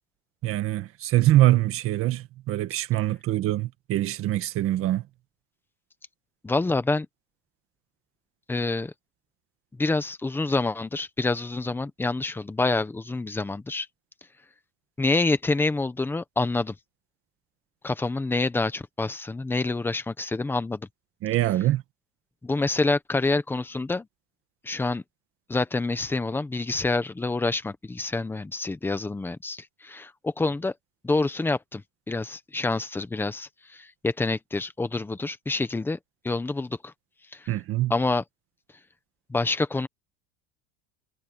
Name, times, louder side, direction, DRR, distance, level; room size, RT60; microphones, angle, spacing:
voice 1, 0.4-5.0 21.2-21.8 37.5-37.9, right 15 dB, 40° right, 1.7 m, -24 dB
voice 2, 6.4-7.1 8.5-8.9 9.8-13.9 15.0-16.7 17.8-20.9 22.4-24.1 24.6-25.0 25.5-30.7 31.0-31.8 32.1-36.0 36.2-36.9 37.3-37.5 37.9-38.2 39.3-39.9, left 3 dB, 5° left, 1.0 m, -27 dB
cardioid pair, 165°, 34 cm